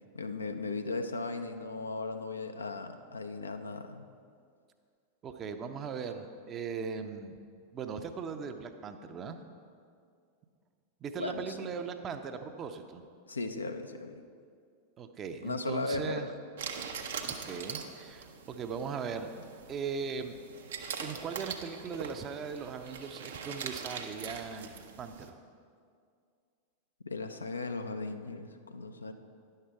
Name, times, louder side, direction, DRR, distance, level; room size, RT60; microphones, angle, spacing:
voice 1, 0.1-4.1 11.1-11.7 13.3-14.2 15.4-16.3 27.1-29.1, left 3 dB, 75° left, 7 dB, 0.5 m, -37 dB
voice 2, 5.2-7.4 7.7-9.4 11.0-13.0 15.0-16.3 17.2-19.3 19.7-20.4 21.0-25.4, right 6 dB, 30° right, 7 dB, 0.6 m, -39 dB
sound 1, 16.6-25.3, right 6 dB, 60° right, 0.7 m, -42 dB
10.0 x 6.6 x 4.6 m, 2.3 s
figure-of-eight pair, 90°, 0 cm